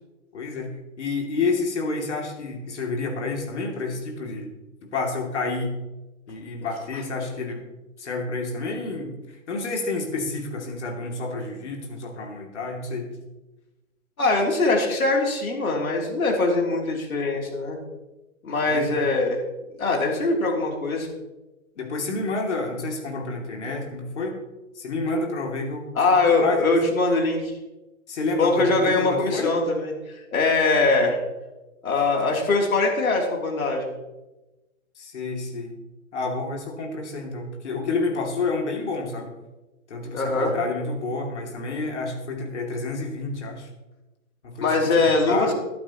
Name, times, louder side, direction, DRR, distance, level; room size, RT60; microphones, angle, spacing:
voice 1, 0.3-0.7 1.0-4.5 4.8-5.8 6.3-7.6 8.0-13.1 18.7-19.0 21.8-24.4 24.7-26.7 28.1-29.5 30.8-31.1 35.0-35.7 36.1-39.3 39.9-43.7 44.4-45.5, left 3 dB, 55° left, 1 dB, 2.8 m, -29 dB
voice 2, 14.2-17.8 18.4-19.4 19.8-21.1 25.9-27.5 28.4-31.2 31.8-33.9 40.1-40.5 44.6-45.5, left 3 dB, 85° left, 0 dB, 3.3 m, -22 dB
14.0 x 11.5 x 3.0 m, 1.0 s
hypercardioid pair, 165°, 41 cm